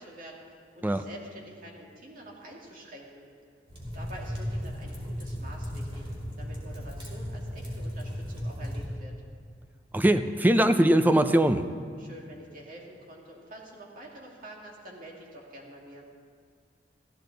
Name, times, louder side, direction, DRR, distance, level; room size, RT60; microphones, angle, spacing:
voice 1, 0.0-3.3 3.9-6.1 6.4-9.1 12.0-16.1, right 1 dB, 50° right, -1 dB, 2.2 m, -47 dB
sound 1, 3.7-8.9, equal, 30° right, 2.7 m, -36 dB
voice 2, 9.9-11.6, right 1 dB, 10° right, 9 dB, 0.4 m, -21 dB
15.0 x 13.5 x 4.0 m, 2.1 s
head